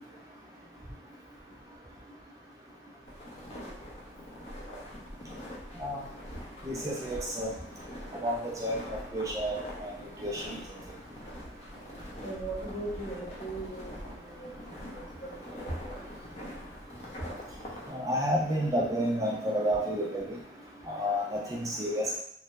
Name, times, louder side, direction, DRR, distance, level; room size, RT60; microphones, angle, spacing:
sound 1, 3.0-17.9, equal, 35° left, 0.6 m, -44 dB
voice 1, 6.7-7.5 8.2-9.5 9.8-9.9 10.2-10.6 17.9-20.2 20.9-22.2, equal, 20° right, -3 dB, 0.4 m, -30 dB
voice 2, 12.2-15.3 15.8-16.0, right 2 dB, 65° left, -6 dB, 1.2 m, -40 dB
3.2 x 2.0 x 2.9 m, 0.70 s
head